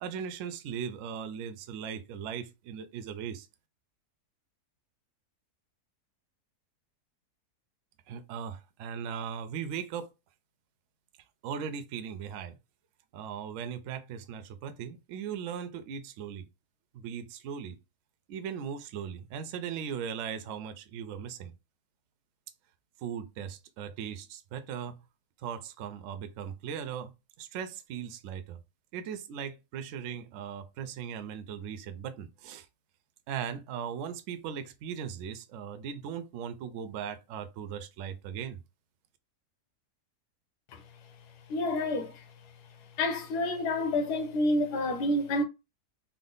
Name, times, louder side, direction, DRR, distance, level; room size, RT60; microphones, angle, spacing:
voice 1, 0.0-3.5 8.1-10.1 11.4-12.6 13.1-16.5 16.9-17.8 18.3-21.5 23.0-25.0 25.4-27.1 27.4-28.6 28.9-32.7 33.3-38.6, right 8 dB, 70° right, 0.7 m, -38 dB
voice 2, 41.5-42.2 43.0-45.4, left 1 dB, 80° left, 1.3 m, -28 dB
3.6 x 2.0 x 3.8 m
omnidirectional pair, 1.7 m